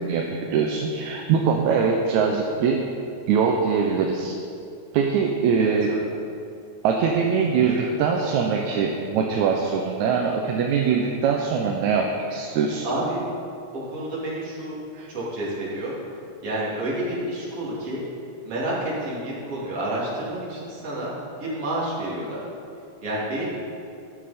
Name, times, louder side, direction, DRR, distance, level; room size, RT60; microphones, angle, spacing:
voice 1, 0.0-2.8 3.3-4.3 4.9-5.9 6.8-12.8 15.0-15.1, right 6 dB, 80° right, 1 dB, 2.1 m, -22 dB
voice 2, 5.6-6.0 7.5-7.9 12.8-13.2 13.7-14.8 15.1-15.9 16.4-18.0 18.4-21.1 21.4-22.4 23.0-23.5, right 1 dB, 55° right, -7 dB, 3.7 m, -29 dB
12.0 x 10.5 x 4.3 m, 2.6 s
omnidirectional pair, 3.3 m